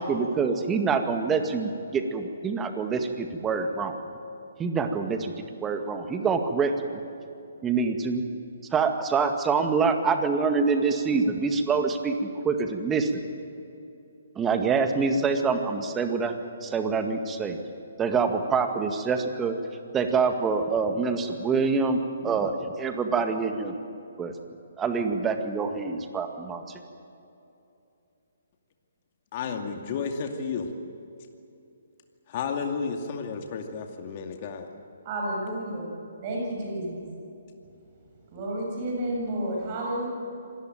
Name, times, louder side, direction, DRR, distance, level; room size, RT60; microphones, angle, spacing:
voice 1, 0.0-4.0 4.6-5.3 5.6-7.0 7.6-8.2 8.7-13.2 14.4-16.3 16.6-17.6 18.0-19.6 19.9-23.7 24.2-24.3 24.8-26.6, right 5 dB, 15° right, 6 dB, 2.0 m, -26 dB
voice 2, 29.3-30.7 32.3-34.7, left 5 dB, 40° left, 4 dB, 2.4 m, -32 dB
voice 3, 35.0-35.9 36.2-37.0 38.3-40.1, right 1 dB, 35° right, -1 dB, 7.3 m, -31 dB
26.0 x 19.0 x 9.2 m, 2.7 s
figure-of-eight pair, 135°, 0 cm